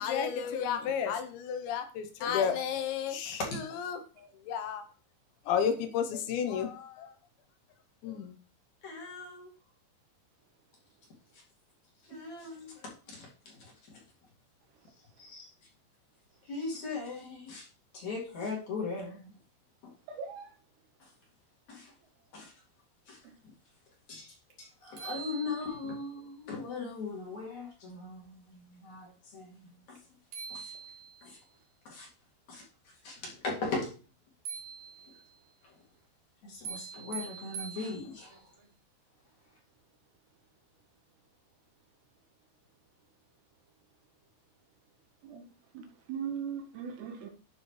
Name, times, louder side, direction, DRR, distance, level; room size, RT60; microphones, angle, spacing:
voice 1, 0.0-3.4 3.8-4.8 5.5-7.1 8.0-8.3, left 7 dB, 80° left, 3.2 m, -32 dB
voice 2, 3.2-3.6 8.8-9.5 12.1-13.3 15.2-15.5 16.4-17.7 17.9-19.3 19.8-19.9 21.0-21.1 21.7-21.9 22.3-22.5 23.1-23.2 24.1-30.0 30.5-30.7 31.2-31.4 31.8-32.1 32.5-32.6 33.0-33.9 35.6-35.7 36.4-38.4, left 3 dB, 45° left, 3.1 m, -39 dB
voice 3, 20.1-20.5 45.2-45.5 45.7-47.3, right 7 dB, 75° right, 2.9 m, -39 dB
sound 1, 24.5-24.6 25.0-26.1 30.0-30.1 30.3-31.4 34.5-35.4 36.6-38.4, right 6 dB, 55° right, 2.3 m, -44 dB
12.0 x 5.6 x 3.3 m
omnidirectional pair, 5.2 m